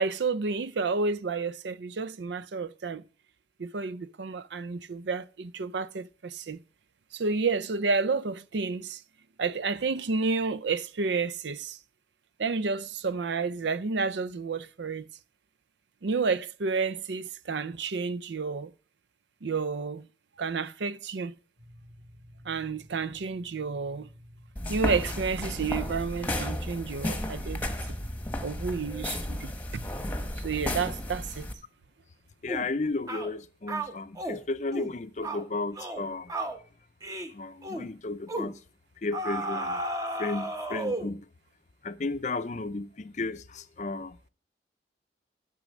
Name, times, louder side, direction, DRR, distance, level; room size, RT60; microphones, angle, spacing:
voice 1, 0.0-3.0 3.6-6.6 7.1-9.0 9.4-11.8 12.4-15.1 16.0-18.7 19.4-20.1 20.4-21.3 22.5-24.1 24.7-27.6 28.4-29.8 30.4-31.5, right 4 dB, 80° right, 0.5 m, -30 dB
sound 1, 21.6-25.3, equal, 55° right, 6.8 m, -54 dB
sound 2, 24.6-31.5, left 1 dB, 10° left, 1.1 m, -33 dB
voice 2, 32.4-36.5 37.3-38.6 39.0-39.8 40.2-41.2 41.8-44.2, left 3 dB, 40° left, 0.5 m, -33 dB
sound 3, 32.5-32.7 33.1-33.3 33.7-34.4 34.7-34.9 35.2-35.4 35.8-36.0 36.3-36.6 37.0-37.3 37.6-37.9 38.3-38.5 39.1-41.2, right 1 dB, 20° right, 0.9 m, -33 dB
12.5 x 6.2 x 6.3 m
head